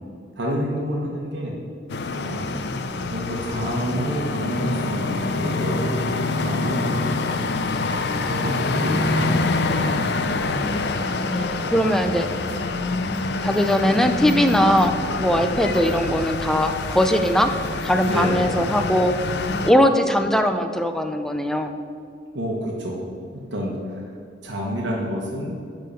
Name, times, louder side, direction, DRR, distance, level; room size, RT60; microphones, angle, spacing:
voice 1, 0.4-1.5 2.1-2.6 3.1-7.0 7.4-7.5 8.3-9.6 18.0-18.5 22.3-23.0 23.3-24.1 24.4-25.6, equal, 80° right, -2 dB, 1.2 m, -28 dB
sound 1, 1.9-19.7, left 3 dB, 65° left, 0.5 m, -26 dB
voice 2, 11.2-12.3 13.4-17.5 17.8-19.1 19.6-21.7, equal, 5° left, 6 dB, 0.4 m, -20 dB
10.5 x 3.8 x 6.7 m, 2.4 s
head